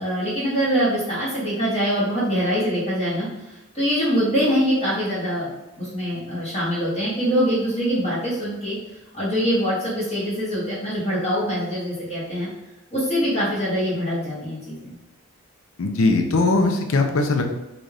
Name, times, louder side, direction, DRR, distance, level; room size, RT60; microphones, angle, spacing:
voice 1, 0.0-5.5 5.8-8.8 9.1-12.5 12.9-15.0, equal, 30° left, -10 dB, 1.0 m, -24 dB
voice 2, 15.8-17.4, left 3 dB, 70° left, 4 dB, 0.5 m, -20 dB
4.0 x 2.4 x 3.2 m, 1.0 s
head